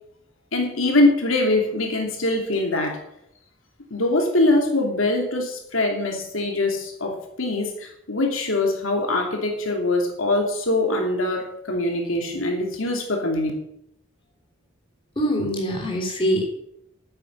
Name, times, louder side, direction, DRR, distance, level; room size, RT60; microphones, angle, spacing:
voice 1, 0.5-3.0 3.9-13.5, left 2 dB, 85° left, 2 dB, 2.8 m, -23 dB
voice 2, 15.2-16.4, equal, 25° left, 0 dB, 3.4 m, -23 dB
10.0 x 8.9 x 8.3 m, 0.76 s
head